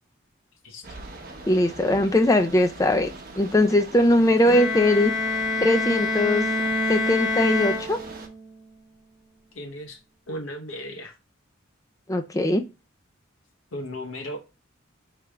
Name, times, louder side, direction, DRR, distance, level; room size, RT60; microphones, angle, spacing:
voice 1, 0.6-1.0 9.5-10.0 10.3-11.2 13.7-14.4, equal, 75° left, 0.9 m, -36 dB
sound 1, 0.8-8.3, right 3 dB, 45° right, 0.9 m, -42 dB
voice 2, 1.5-3.1 3.4-5.1 5.6-6.4 6.9-8.0 12.1-12.6, left 1 dB, 15° left, 0.4 m, -20 dB
Bowed string instrument, 4.5-8.5, left 2 dB, 5° right, 1.0 m, -26 dB
3.3 x 3.3 x 4.8 m
head